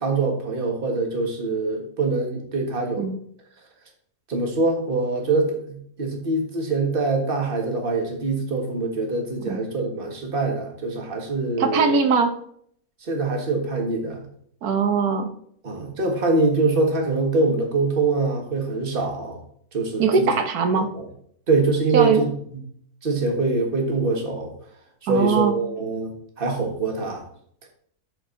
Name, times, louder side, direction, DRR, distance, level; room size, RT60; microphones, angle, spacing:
voice 1, 0.0-3.0 4.3-12.0 13.0-14.3 15.6-19.4 19.7-20.3 20.8-21.1 21.5-22.3 23.0-24.5 25.0-26.1 26.4-27.2, right 3 dB, 40° right, 2 dB, 1.7 m, -24 dB
voice 2, 11.6-12.3 14.6-15.3 20.0-20.9 21.9-22.2 25.1-25.6, right 5 dB, 80° right, 7 dB, 1.6 m, -20 dB
12.0 x 4.4 x 3.9 m, 0.64 s
omnidirectional pair, 1.6 m